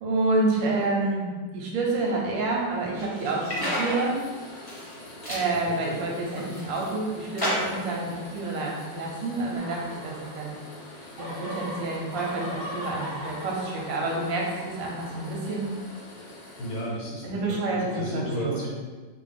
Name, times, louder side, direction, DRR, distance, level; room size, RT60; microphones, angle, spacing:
voice 1, 0.0-4.2 5.3-10.6 11.2-15.7 17.2-18.7, right 2 dB, 90° right, -2 dB, 1.5 m, -28 dB
sound 1, 2.0-17.5, left 1 dB, 85° left, 1.5 m, -45 dB
sound 2, 3.0-4.0 4.5-4.9 5.2-5.5 6.1-6.8 7.4-7.9, equal, 15° left, 0.8 m, -30 dB
sound 3, 9.6-10.7 11.0-16.0, equal, 70° right, 1.5 m, -39 dB
voice 2, 16.6-18.7, right 1 dB, 65° left, -4 dB, 1.2 m, -33 dB
4.0 x 2.1 x 3.3 m, 1.4 s
omnidirectional pair, 2.0 m